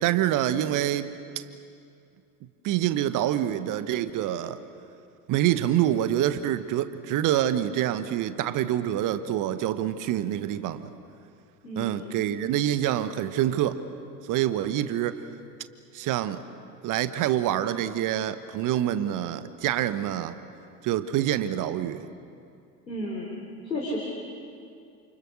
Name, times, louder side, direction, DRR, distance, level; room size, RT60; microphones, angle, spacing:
voice 1, 0.0-1.1 2.6-4.6 5.3-10.9 11.8-13.8 14.3-15.2 15.9-16.4 16.8-20.4 20.8-22.1, right 12 dB, 40° right, 12 dB, 1.3 m, -26 dB
voice 2, 11.6-12.0 22.9-23.3 23.6-24.0, left 1 dB, 85° left, -2 dB, 3.7 m, -32 dB
29.5 x 28.0 x 6.5 m, 2.5 s
figure-of-eight pair, 75°, 49 cm